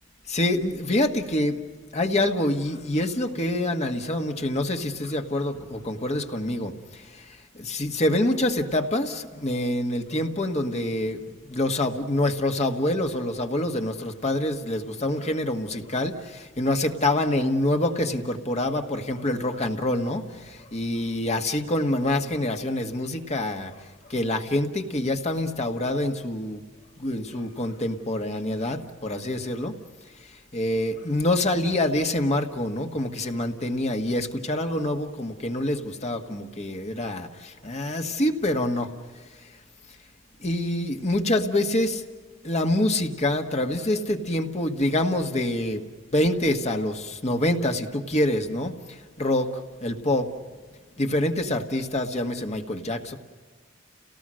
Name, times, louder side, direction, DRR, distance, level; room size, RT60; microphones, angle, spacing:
voice 1, 0.3-1.6 1.9-26.6 27.0-29.7 30.5-38.9 40.4-42.0 42.4-45.8 46.1-50.3 51.0-53.2, left 1 dB, 35° left, 4 dB, 1.6 m, -26 dB
30.0 x 18.5 x 6.4 m, 1.4 s
head